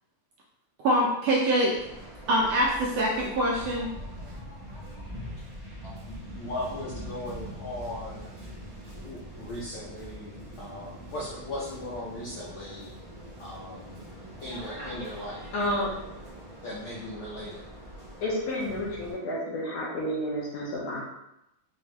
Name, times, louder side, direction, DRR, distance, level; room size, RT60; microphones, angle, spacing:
voice 1, 0.8-1.7 2.3-3.9, right 1 dB, 75° right, -4 dB, 1.5 m, -24 dB
Waves surf, 1.7-19.1, equal, 40° right, 0.4 m, -43 dB
voice 2, 6.3-8.3 8.9-12.9 13.4-13.9 14.4-15.4 16.6-17.6, left 1 dB, 85° left, -6 dB, 1.1 m, -38 dB
voice 3, 15.5-15.9 18.2-21.0, left 1 dB, 65° left, -5 dB, 2.2 m, -30 dB
5.5 x 2.6 x 3.3 m, 0.87 s
omnidirectional pair, 3.4 m